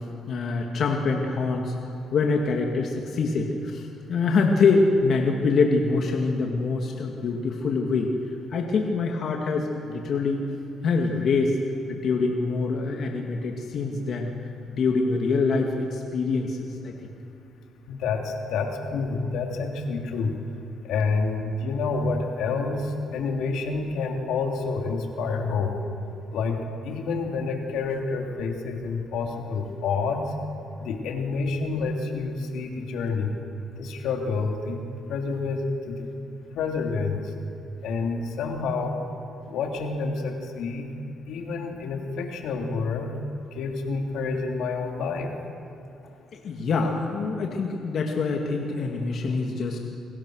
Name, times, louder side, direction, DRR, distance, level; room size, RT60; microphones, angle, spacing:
voice 1, 0.3-1.7 2.1-8.1 8.5-10.4 10.8-11.6 11.9-14.3 14.7-16.9 46.3-49.8, left 4 dB, 60° left, 1 dB, 2.4 m, -25 dB
voice 2, 17.9-20.3 20.8-25.7 26.3-26.6 26.8-30.3 30.8-33.4 33.8-34.8 35.1-36.1 36.5-37.3 37.8-39.0 39.5-40.9 41.3-43.2 43.5-45.3, left 4 dB, 85° left, 2 dB, 3.3 m, -28 dB
29.0 x 23.0 x 6.5 m, 2.6 s
cardioid pair, 90°, 0 cm